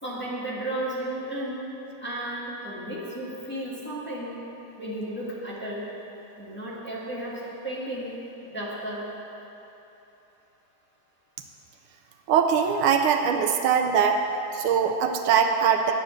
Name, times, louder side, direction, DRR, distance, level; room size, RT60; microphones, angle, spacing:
voice 1, 0.0-4.5 4.8-5.9 6.4-9.1, right 1 dB, 5° left, -7 dB, 1.6 m, -34 dB
voice 2, 12.3-14.2 14.5-15.9, right 7 dB, 80° right, 5 dB, 1.5 m, -22 dB
10.0 x 8.6 x 6.4 m, 3.0 s
omnidirectional pair, 2.4 m